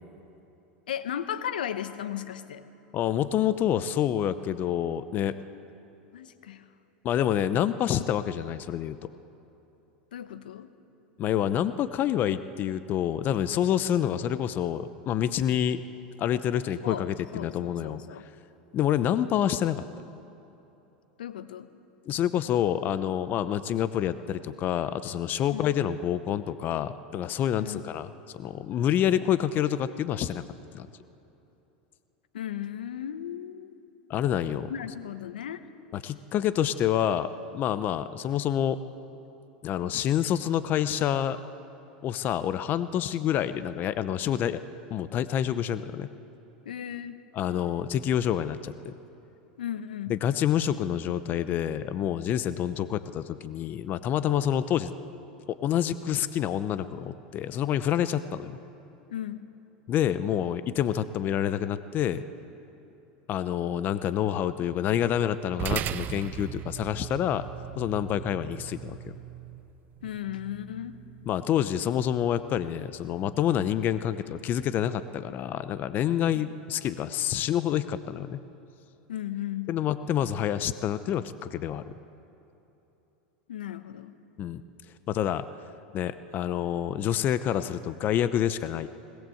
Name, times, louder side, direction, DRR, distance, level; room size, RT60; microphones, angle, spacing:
voice 1, 0.9-2.6 6.1-6.7 10.1-10.7 16.8-17.0 17.3-18.3 21.2-21.7 25.5-25.7 27.6-27.8 32.3-33.8 34.6-35.7 46.6-47.2 49.6-50.2 59.1-59.5 70.0-71.0 79.1-79.8 83.5-84.2, left 10 dB, 90° left, 12 dB, 1.0 m, -36 dB
voice 2, 2.9-5.3 7.0-9.0 11.2-15.8 16.2-18.0 18.7-19.8 22.1-30.4 30.7-30.9 34.1-34.7 35.9-38.8 39.6-41.4 42.0-44.6 44.9-46.1 47.3-48.9 50.1-54.9 55.5-58.6 59.9-62.2 63.3-67.4 67.8-69.2 71.3-78.4 79.7-81.9 84.4-84.6 85.1-85.4 85.9-88.9, left 10 dB, 40° left, 13 dB, 0.8 m, -27 dB
sound 1, 65.6-74.3, right 11 dB, 40° right, 0.9 m, -39 dB
20.5 x 19.0 x 7.9 m, 3.0 s
hypercardioid pair, 105°, 5 cm